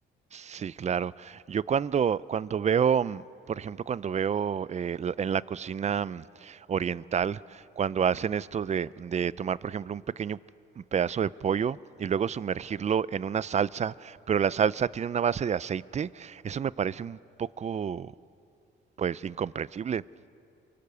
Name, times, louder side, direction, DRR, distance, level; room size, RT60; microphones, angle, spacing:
voice 1, 0.3-10.4 10.8-18.1 19.0-20.0, right 7 dB, 35° right, 0.5 m, -29 dB
27.5 x 23.5 x 6.8 m
cardioid pair, 90°, 20 cm